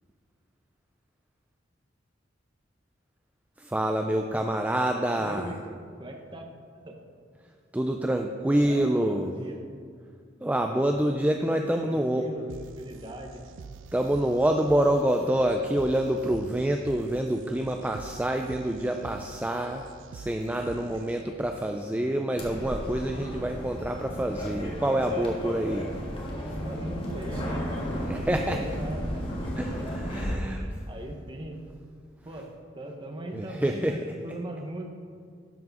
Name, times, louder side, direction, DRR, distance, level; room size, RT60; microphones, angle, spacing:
voice 1, 3.6-5.5 7.7-9.3 10.4-12.3 13.9-19.8 20.1-25.9 28.1-28.6 29.6-30.6 33.3-33.9, right 1 dB, 10° right, 4 dB, 0.3 m, -27 dB
voice 2, 5.0-6.4 6.7-6.9 8.6-9.6 10.4-10.8 11.8-13.4 20.7-21.0 25.5-25.7 26.6-29.2 30.4-31.6 32.2-34.8, right 1 dB, 25° right, 3 dB, 1.0 m, -40 dB
sound 1, 12.5-21.5, right 4 dB, 80° right, 0.4 m, -46 dB
sound 2, 22.4-30.3, equal, 30° left, 1.7 m, -34 dB
12.0 x 4.8 x 5.4 m, 2.2 s
head